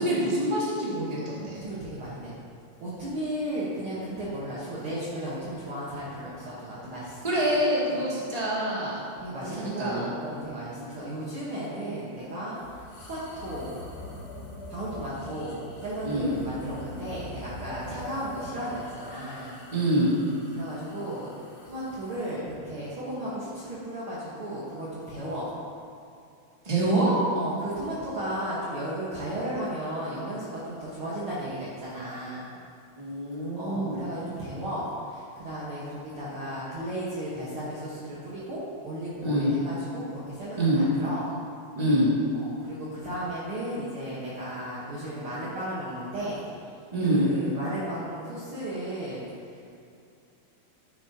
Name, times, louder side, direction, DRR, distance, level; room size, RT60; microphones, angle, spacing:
voice 1, 0.0-1.6 7.2-9.0 9.5-10.1 10.7-10.8 16.0-16.3 19.7-20.1 26.6-27.2 33.0-34.0 39.2-39.5 40.6-40.8 41.7-42.1 46.9-47.2, right 1 dB, 15° right, -8 dB, 1.3 m, -25 dB
voice 2, 1.6-2.3 2.8-7.5 7.9-8.0 9.2-13.7 14.7-19.5 20.5-25.5 27.3-32.5 33.6-41.2 42.3-46.4 47.0-49.6, right 1 dB, 80° right, -8 dB, 1.2 m, -35 dB
sound 1, 12.6-22.4, left 1 dB, 50° left, 2.3 m, -44 dB
11.0 x 9.6 x 2.9 m, 2.5 s
omnidirectional pair, 4.7 m